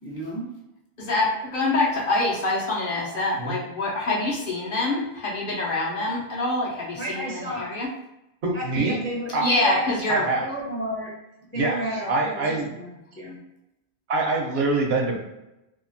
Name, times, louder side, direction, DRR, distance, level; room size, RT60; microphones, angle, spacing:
voice 1, 0.0-0.4 7.0-7.7 8.5-9.9 10.4-11.1 11.5-13.4, right 1 dB, 20° left, -3 dB, 0.3 m, -32 dB
voice 2, 1.0-7.9 9.4-10.3, left 2 dB, 60° left, -4 dB, 0.8 m, -25 dB
voice 3, 8.4-9.0 9.3-9.4 10.1-10.5 11.6-11.8 12.1-12.7 14.1-15.2, right 3 dB, 75° right, 1 dB, 0.9 m, -24 dB
2.8 x 2.4 x 2.6 m, 0.90 s
omnidirectional pair, 1.1 m